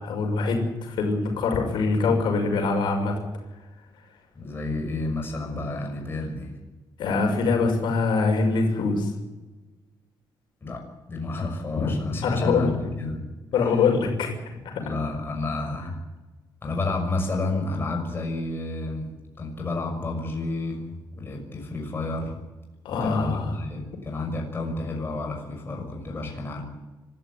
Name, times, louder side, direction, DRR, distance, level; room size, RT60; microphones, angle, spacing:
voice 1, 0.0-3.1 7.0-9.1 11.7-11.9 12.2-12.7 13.5-14.8 22.8-23.5, left 4 dB, 75° left, 2 dB, 6.3 m, -24 dB
voice 2, 4.3-6.5 10.6-13.2 13.6-13.7 14.8-15.9 16.6-19.1 19.4-22.3 22.9-26.6, left 2 dB, 30° left, 2 dB, 6.2 m, -30 dB
25.0 x 14.0 x 9.7 m, 1.2 s
cardioid pair, 125°, 8 cm